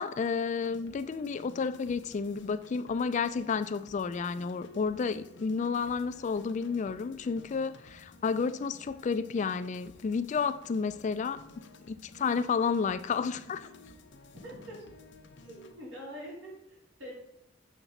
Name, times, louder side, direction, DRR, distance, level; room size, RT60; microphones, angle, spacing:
voice 1, 0.0-11.4 11.9-13.7, left 5 dB, 40° left, 13 dB, 0.3 m, -31 dB
sound 1, 0.6-15.7, left 2 dB, 70° left, 0.7 m, -53 dB
voice 2, 14.4-14.9 15.4-17.1, equal, 75° right, -4 dB, 3.1 m, -44 dB
7.2 x 5.9 x 4.0 m, 0.84 s
head